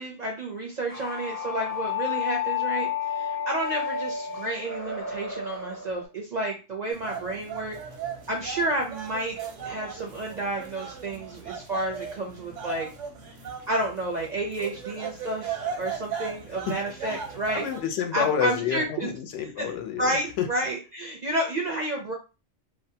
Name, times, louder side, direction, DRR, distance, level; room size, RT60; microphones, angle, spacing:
voice 1, 0.0-2.9 3.1-7.8 8.3-9.4 9.6-12.9 13.7-17.6 18.1-19.1 19.6-19.7 20.0-22.1, right 1 dB, 60° right, 0 dB, 0.4 m, -30 dB
sound 1, 0.9-6.0, left 8 dB, 20° left, 0.3 m, -31 dB
sound 2, 6.9-17.8, right 7 dB, 85° right, 1.0 m, -37 dB
voice 2, 17.5-20.5, left 8 dB, 75° left, 6 dB, 0.9 m, -29 dB
2.6 x 2.1 x 2.6 m, 0.31 s
omnidirectional pair, 1.2 m